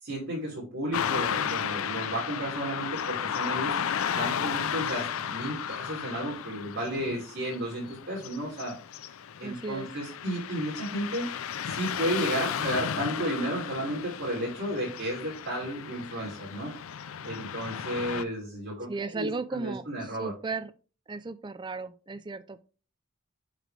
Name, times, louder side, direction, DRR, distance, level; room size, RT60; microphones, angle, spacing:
voice 1, 0.0-8.8 9.4-16.7 17.2-20.3, right 1 dB, 55° right, 3.1 m, -33 dB
Car passing by / Traffic noise roadway noise, 0.9-18.2, left 8 dB, 75° left, 0.5 m, -34 dB
voice 2, 9.4-9.9 18.9-20.7 21.1-22.6, right 3 dB, 20° right, 0.4 m, -35 dB
7.6 x 5.0 x 3.3 m
head